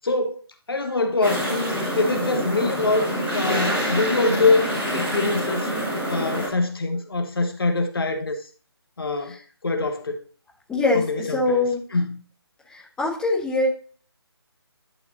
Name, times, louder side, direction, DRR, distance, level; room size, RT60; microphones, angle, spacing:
voice 1, 0.0-0.4 0.7-5.7 6.1-8.4 9.0-9.4 9.6-10.2 10.9-12.2, left 3 dB, 60° left, 1.5 m, -24 dB
sound 1, 1.2-6.5, equal, 10° right, 2.6 m, -26 dB
voice 2, 10.7-11.8 12.7-13.7, left 2 dB, 5° left, 1.6 m, -23 dB
11.0 x 5.7 x 2.9 m
figure-of-eight pair, 155°, 14 cm